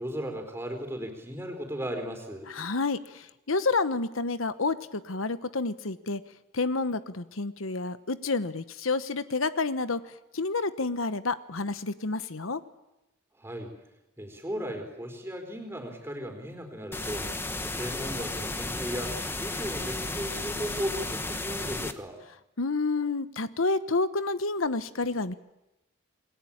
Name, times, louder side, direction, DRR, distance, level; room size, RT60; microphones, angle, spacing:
voice 1, 0.0-2.5 13.4-13.7 14.2-22.2, equal, 10° right, 5 dB, 4.1 m, -36 dB
voice 2, 2.5-6.2 6.5-12.6 22.6-25.3, left 3 dB, 90° left, 12 dB, 1.1 m, -29 dB
sound 1, 16.9-21.9, left 2 dB, 10° left, 1.2 m, -33 dB
28.5 x 21.5 x 8.8 m, 0.94 s
head